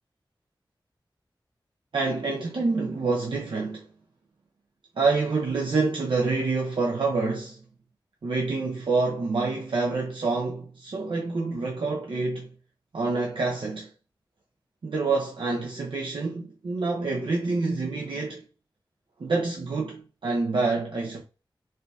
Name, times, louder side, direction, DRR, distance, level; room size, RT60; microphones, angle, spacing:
voice 1, 1.9-3.9 5.0-7.6 8.2-12.5 12.9-13.9 14.8-18.4 19.2-21.2, right 3 dB, 80° right, 0.5 m, -27 dB
4.3 x 2.6 x 2.3 m
wide cardioid pair, 80°, 8 cm